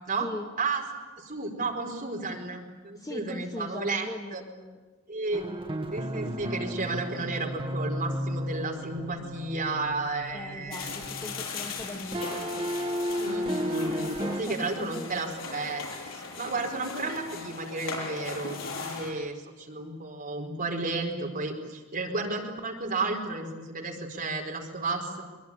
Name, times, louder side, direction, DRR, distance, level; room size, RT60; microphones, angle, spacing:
voice 1, 0.2-0.5 2.9-4.8 10.3-12.7 14.2-15.4, left 1 dB, 15° left, 3 dB, 1.7 m, -40 dB
voice 2, 1.2-4.4 5.1-5.4 5.9-10.9 13.2-15.8 16.1-25.2, right 3 dB, 40° right, 1 dB, 4.6 m, -33 dB
sound 1, 5.3-11.9 12.1-14.4, equal, 25° right, 1.2 m, -34 dB
sound 2, 10.7-19.1, left 4 dB, 65° left, 6.9 m, -38 dB
23.0 x 22.5 x 10.0 m, 1.3 s
head